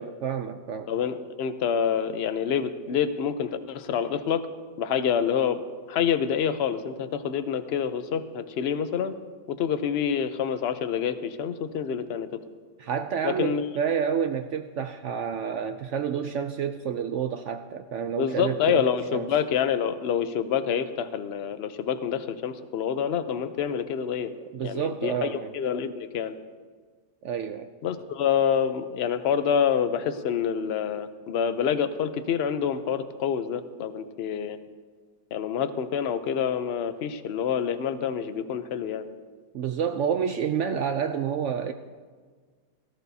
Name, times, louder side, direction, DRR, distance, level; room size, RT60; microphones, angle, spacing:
voice 1, 0.0-0.9 12.8-18.9 19.1-19.4 24.5-25.5 27.2-27.7 39.5-41.7, right 7 dB, 75° right, 8 dB, 0.7 m, -29 dB
voice 2, 0.9-4.4 4.8-5.6 5.9-9.1 9.5-12.3 13.2-13.7 18.2-24.3 24.6-26.3 27.8-34.6 35.3-39.0, left 8 dB, 60° left, 10 dB, 0.7 m, -27 dB
17.5 x 14.0 x 2.7 m, 1.5 s
omnidirectional pair, 1.7 m